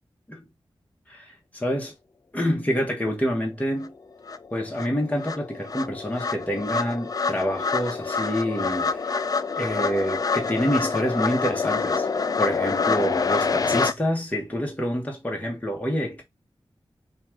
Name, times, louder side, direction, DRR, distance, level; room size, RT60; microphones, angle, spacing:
voice 1, 1.1-1.9 2.3-3.9 4.5-9.3 9.6-12.1 12.4-16.2, equal, 15° left, 1.2 m, -27 dB
sound 1, 3.8-3.9 4.3-13.9, left 4 dB, 40° left, 0.3 m, -26 dB
5.6 x 2.4 x 2.9 m
wide cardioid pair, 105°, 9 cm